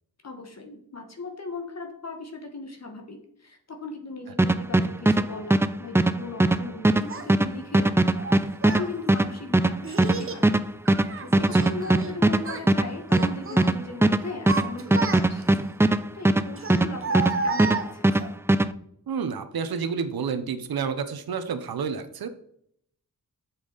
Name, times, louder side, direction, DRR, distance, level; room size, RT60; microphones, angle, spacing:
voice 1, 0.2-10.6 11.2-18.1, left 3 dB, 45° left, 4 dB, 1.5 m, -38 dB
sound 1, 4.4-17.3 17.6-18.7, right 2 dB, 5° right, 0.3 m, -20 dB
Child speech kid speaking, 7.1-7.2 8.2-8.9 9.8-10.4 10.9-12.1 12.4-12.7 13.1-13.7 14.2-15.6 16.6-18.3, right 4 dB, 35° right, 1.0 m, -32 dB
voice 2, 11.4-11.7 19.1-22.3, right 6 dB, 90° right, 10 dB, 0.9 m, -30 dB
8.5 x 7.2 x 4.0 m, 0.70 s
wide cardioid pair, 110°, 36 cm